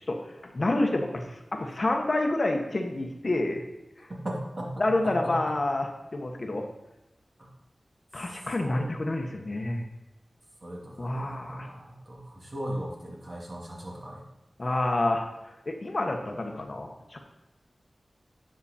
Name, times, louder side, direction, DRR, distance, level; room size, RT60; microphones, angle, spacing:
voice 1, 0.1-3.6 4.8-6.6 8.1-9.8 11.0-11.7 14.6-15.3 15.7-17.2, left 2 dB, 50° left, 3 dB, 1.2 m, -28 dB
voice 2, 4.2-4.7 5.0-5.3 8.6-8.8 10.6-14.2, right 1 dB, 45° right, -3 dB, 2.6 m, -37 dB
9.9 x 6.2 x 4.3 m, 0.96 s
wide cardioid pair, 60°, 0 cm